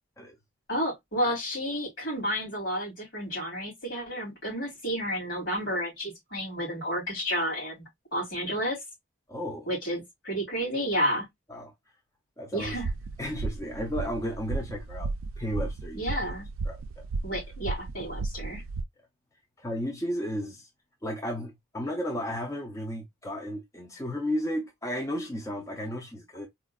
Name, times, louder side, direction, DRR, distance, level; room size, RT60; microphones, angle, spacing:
voice 1, 0.7-8.8 9.7-11.3 12.5-12.9 15.9-16.5 17.2-18.6, equal, 65° left, 2.8 m, -31 dB
voice 2, 9.3-9.7 11.5-11.7 12.4-12.8 13.2-16.3 16.7-16.8 19.6-20.7 21.0-26.5, equal, 15° left, 0.5 m, -34 dB
sound 1, 12.6-18.8, right 3 dB, 85° right, 0.3 m, -34 dB
4.2 x 2.4 x 2.3 m
head